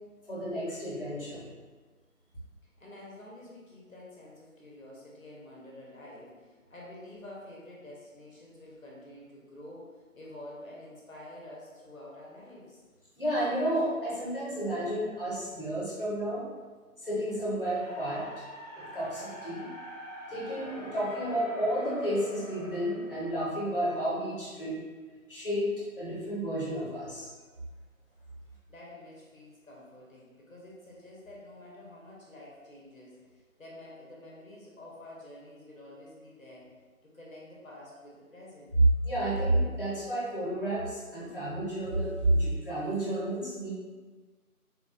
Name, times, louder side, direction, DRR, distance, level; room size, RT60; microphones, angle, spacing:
voice 1, 0.3-1.5 13.2-16.5 17.0-18.3 18.7-19.7 20.3-24.8 25.3-27.3 39.0-43.7, right 1 dB, 40° left, -8 dB, 1.0 m, -31 dB
voice 2, 2.8-12.8 28.7-36.7 37.0-38.7, left 1 dB, 65° left, -4 dB, 0.9 m, -49 dB
sound 1, 17.7-23.9, left 1 dB, ahead, 0.5 m, -45 dB
3.5 x 2.3 x 2.5 m, 1.4 s
figure-of-eight pair, 165°, 44 cm